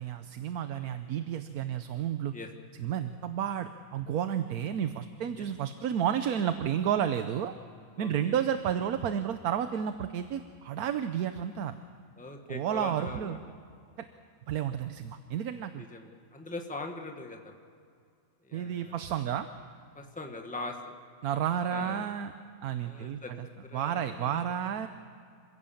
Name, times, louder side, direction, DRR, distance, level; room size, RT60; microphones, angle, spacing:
voice 1, 0.0-2.3 2.8-7.5 8.0-11.7 12.5-13.4 14.5-15.8 18.5-19.5 21.2-22.3 22.6-23.5 23.7-24.9, right 9 dB, 80° right, 9 dB, 1.3 m, -31 dB
voice 2, 0.7-1.0 2.3-2.5 5.4-5.5 8.0-8.4 12.2-13.4 15.8-17.5 18.4-19.0 19.9-20.9 21.7-22.0 22.8-24.4, left 2 dB, 5° left, 3 dB, 1.5 m, -42 dB
27.0 x 16.5 x 7.2 m, 2.4 s
omnidirectional pair, 1.6 m